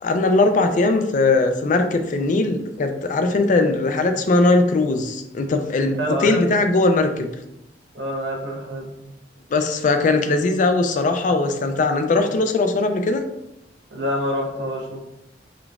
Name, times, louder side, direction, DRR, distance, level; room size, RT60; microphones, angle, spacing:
voice 1, 0.0-7.3 9.5-13.2, left 3 dB, 45° left, 7 dB, 0.4 m, -20 dB
voice 2, 6.0-6.6 7.9-9.1 13.9-15.0, equal, 80° right, 0 dB, 0.8 m, -27 dB
3.7 x 3.4 x 2.4 m, 0.86 s
head